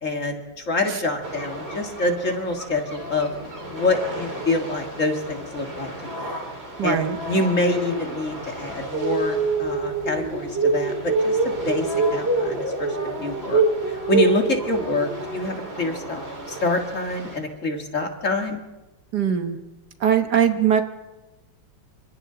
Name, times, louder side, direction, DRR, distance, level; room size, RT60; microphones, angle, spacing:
voice 1, 0.0-3.3 3.7-6.3 6.8-18.6, left 2 dB, 40° left, 4 dB, 2.3 m, -26 dB
sound 1, 1.2-17.4, right 3 dB, 30° right, 3.7 m, -27 dB
voice 2, 6.8-7.2 19.1-19.6 20.0-20.8, right 8 dB, 60° right, 8 dB, 1.6 m, -20 dB
28.0 x 25.5 x 3.9 m, 1.1 s
omnidirectional pair, 2.1 m